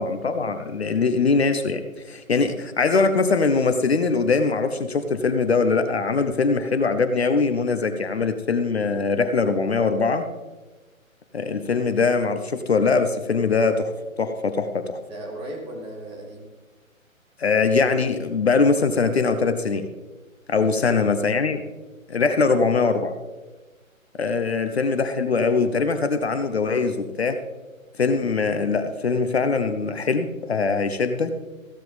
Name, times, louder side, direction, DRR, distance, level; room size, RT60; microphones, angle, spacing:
voice 1, 0.0-10.2 11.3-15.0 17.4-19.9 20.5-21.6 22.1-23.1 24.2-27.4 28.0-31.3, left 4 dB, 50° left, 9 dB, 0.9 m, -22 dB
voice 2, 15.1-16.5 20.5-21.1 22.2-23.0 24.4-24.5, right 1 dB, 15° right, -2 dB, 2.0 m, -38 dB
15.0 x 13.5 x 3.5 m, 1.2 s
figure-of-eight pair, 140°, 41 cm